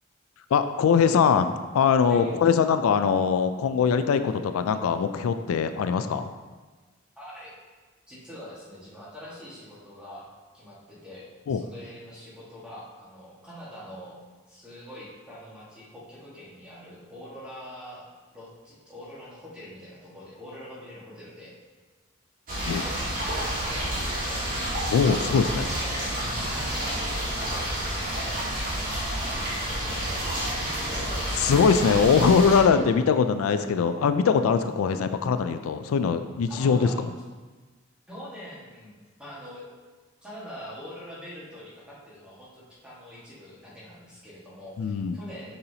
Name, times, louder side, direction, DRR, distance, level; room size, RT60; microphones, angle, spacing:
voice 1, 0.5-6.3 11.5-11.6 22.7-22.8 24.9-25.7 31.4-37.1 44.8-45.2, left 6 dB, 90° left, 10 dB, 0.3 m, -22 dB
voice 2, 7.1-7.5 8.1-14.2 14.5-21.5 22.5-24.4 25.5-27.7 28.2-28.7 29.9-31.2 36.5-37.0 38.1-39.7 40.2-45.5, equal, 5° right, -8 dB, 1.6 m, -44 dB
sound 1, 22.5-32.6, equal, 40° right, 1.7 m, -29 dB
6.7 x 5.6 x 2.8 m, 1.3 s
head